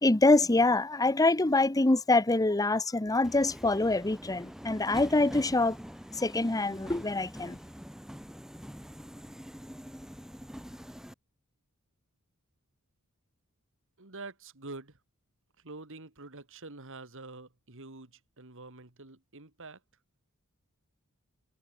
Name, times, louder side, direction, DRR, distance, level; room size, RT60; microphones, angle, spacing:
voice 1, 0.0-5.8 6.1-7.6, left 2 dB, 15° left, 0.8 m, -25 dB
Subway metro underground, 3.2-11.1, equal, ahead, 4.7 m, -45 dB
voice 2, 14.0-15.0 15.6-19.8, right 3 dB, 60° right, 2.8 m, -46 dB
head